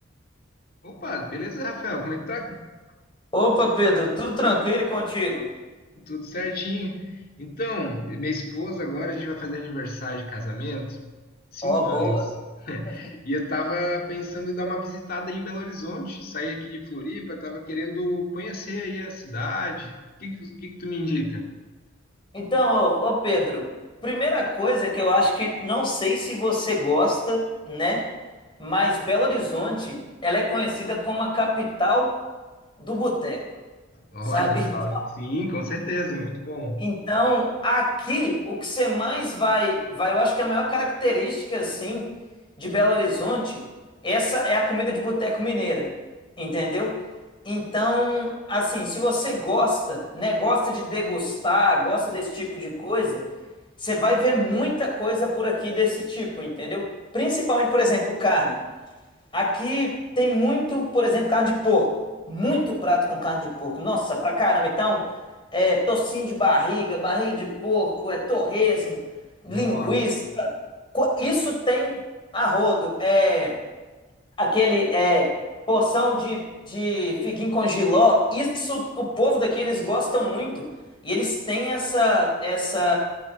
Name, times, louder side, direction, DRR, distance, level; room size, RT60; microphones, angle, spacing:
voice 1, 0.8-2.7 6.0-11.0 11.5-21.5 34.1-37.0 69.5-70.1, left 1 dB, 50° left, 1 dB, 2.2 m, -31 dB
voice 2, 3.3-5.5 11.6-12.2 22.3-23.7 24.0-28.0 28.6-32.1 32.8-33.4 34.3-34.6 34.9-35.0 36.8-42.1 42.6-43.6 44.0-45.9 46.4-46.9 47.4-53.2 53.8-56.9 57.1-58.6 59.3-61.9 62.3-65.0 65.5-69.0 69.4-70.5 70.9-71.9 72.3-73.6 74.4-75.3 75.7-80.7 81.0-83.0, left 1 dB, 25° left, 0 dB, 4.1 m, -23 dB
28.5 x 9.9 x 4.3 m, 1.3 s
head